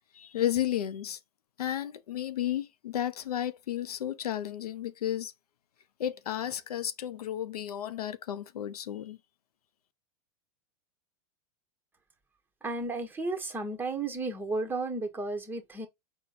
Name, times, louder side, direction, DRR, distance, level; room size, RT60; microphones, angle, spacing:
voice 1, 0.1-1.2 1.6-5.3 6.0-9.2, left 11 dB, 80° left, 0.5 m, -33 dB
voice 2, 12.6-15.9, right 3 dB, 10° right, 1.1 m, -33 dB
4.3 x 2.2 x 4.0 m
hypercardioid pair, 100°, 19 cm